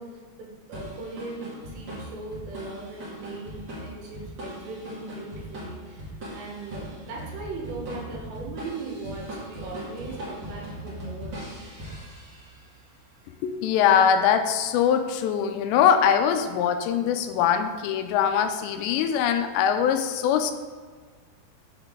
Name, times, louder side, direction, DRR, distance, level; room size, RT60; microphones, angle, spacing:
voice 1, 0.0-11.4, right 3 dB, 75° right, -2 dB, 3.5 m, -39 dB
sound 1, 0.7-12.7, right 1 dB, 45° right, 1.6 m, -39 dB
voice 2, 13.4-20.5, left 8 dB, 85° left, 8 dB, 2.8 m, -22 dB
7.3 x 7.0 x 3.6 m, 1.5 s
omnidirectional pair, 5.0 m